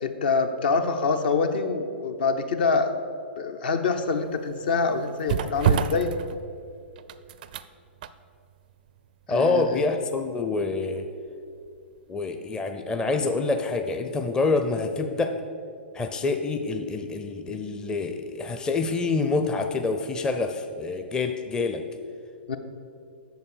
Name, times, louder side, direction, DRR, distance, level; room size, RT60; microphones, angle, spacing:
voice 1, 0.0-2.9 3.4-6.1 9.3-9.9 22.5-22.6, left 4 dB, 55° left, 7 dB, 0.8 m, -25 dB
sound 1, 4.0-12.0 12.3-12.5, right 9 dB, 50° right, 0.4 m, -31 dB
voice 2, 9.3-11.1 12.1-15.3 15.9-21.8, left 3 dB, 10° left, 6 dB, 0.5 m, -26 dB
8.1 x 6.9 x 6.6 m, 2.3 s
figure-of-eight pair, 110°, 6 cm